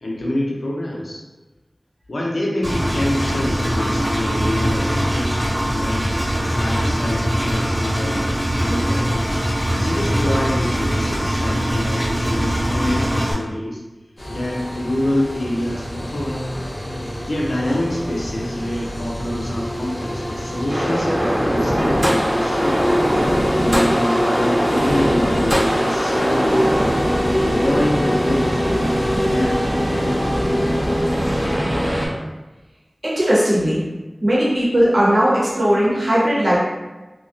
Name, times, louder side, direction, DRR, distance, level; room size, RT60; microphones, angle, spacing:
voice 1, 0.0-1.2 2.1-6.1 6.5-9.4 9.8-13.8 14.3-16.5 17.2-22.8 23.6-29.6 29.9-30.4, left 1 dB, 85° left, -4 dB, 0.5 m, -26 dB
Engine, 2.6-13.3, equal, 5° right, 0.6 m, -21 dB
sound 1, 14.2-31.6, equal, 45° left, 0.7 m, -25 dB
sound 2, 20.7-32.1, equal, 45° right, 0.7 m, -21 dB
voice 2, 33.0-33.8 34.2-36.6, equal, 75° right, -8 dB, 0.8 m, -17 dB
2.3 x 2.0 x 2.6 m, 1.1 s
wide cardioid pair, 45°, 0 cm